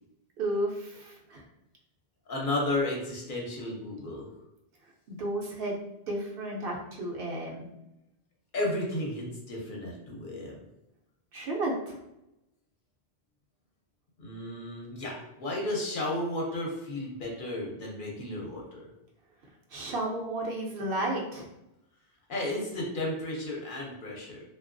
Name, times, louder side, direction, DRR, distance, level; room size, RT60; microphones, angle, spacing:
voice 1, 0.4-1.4 5.1-5.8 6.1-7.7 11.3-12.0 19.7-21.5, right 1 dB, 65° right, -1 dB, 0.8 m, -32 dB
voice 2, 2.3-4.3 8.5-10.6 14.2-18.9 22.3-24.4, left 1 dB, 60° left, -2 dB, 0.8 m, -33 dB
2.8 x 2.3 x 2.5 m, 0.87 s
omnidirectional pair, 1.1 m